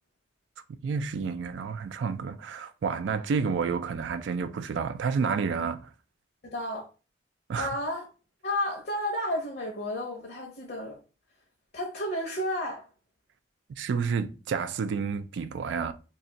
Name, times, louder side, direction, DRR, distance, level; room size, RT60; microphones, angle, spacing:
voice 1, 0.7-5.9 7.5-7.7 13.8-15.9, right 5 dB, 85° right, 0.3 m, -30 dB
voice 2, 6.4-6.9 7.6-8.1 8.4-11.0 11.7-12.9, left 1 dB, 55° left, 0.7 m, -32 dB
2.5 x 2.3 x 3.9 m
head